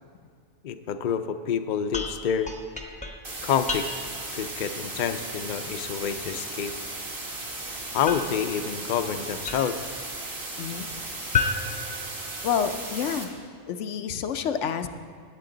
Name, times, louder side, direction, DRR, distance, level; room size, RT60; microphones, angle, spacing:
voice 1, 0.6-2.5 3.4-3.9 4.3-6.7 7.9-10.0, left 8 dB, 55° left, 9 dB, 0.6 m, -28 dB
sound 1, 1.9-4.3 8.1-9.9 11.3-12.8, left 4 dB, 5° left, 0.8 m, -33 dB
sound 2, 3.2-13.2, right 2 dB, 50° right, 1.6 m, -36 dB
voice 2, 12.4-13.4 13.7-14.9, left 7 dB, 80° left, 9 dB, 1.0 m, -28 dB
18.5 x 8.4 x 3.9 m, 2.1 s
omnidirectional pair, 1.2 m